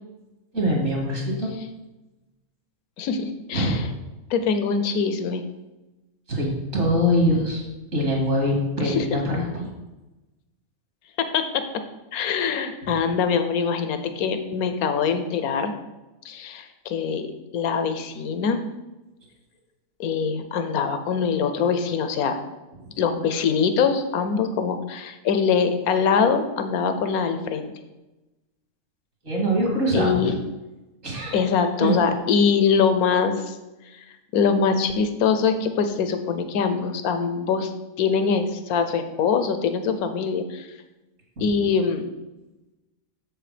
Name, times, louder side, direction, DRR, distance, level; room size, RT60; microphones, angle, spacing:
voice 1, 0.5-1.5 3.5-3.8 6.3-7.6 7.9-9.7 29.2-30.2 31.0-31.5 31.8-32.0 41.4-41.5, equal, 60° right, -1 dB, 2.8 m, -23 dB
voice 2, 3.0-3.8 4.3-5.4 8.8-9.2 11.2-11.7 12.1-15.7 16.2-17.3 17.5-18.6 20.0-22.4 23.0-27.7 29.9-30.3 31.3-33.6 34.3-37.7 38.0-40.7 41.4-42.0, left 6 dB, 85° left, 8 dB, 1.3 m, -23 dB
7.8 x 7.1 x 5.0 m, 1.0 s
omnidirectional pair, 1.5 m